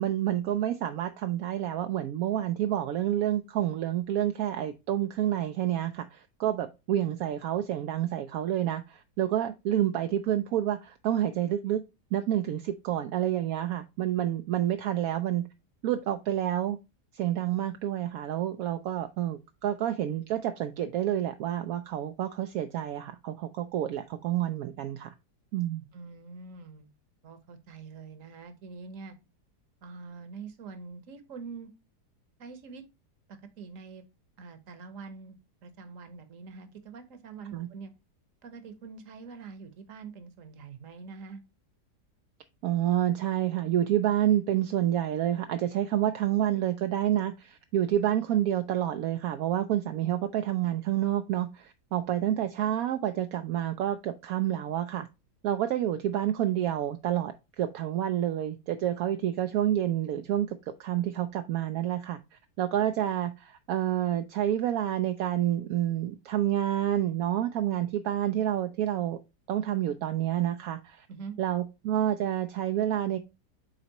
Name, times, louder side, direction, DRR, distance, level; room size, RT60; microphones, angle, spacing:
voice 1, 0.0-11.8 12.1-15.4 15.8-16.8 17.1-25.1 25.5-25.8 37.5-37.7 42.6-55.1 55.4-62.2 62.6-69.2 69.5-71.1 71.4-73.2, right 11 dB, 70° right, 0.9 m, -28 dB
voice 2, 25.9-26.9 27.2-29.1 29.8-31.7 32.4-32.8 33.3-34.0 34.4-37.9 38.4-41.4 71.1-71.4, right 5 dB, 55° right, 1.3 m, -44 dB
8.0 x 4.1 x 2.9 m
omnidirectional pair, 1.8 m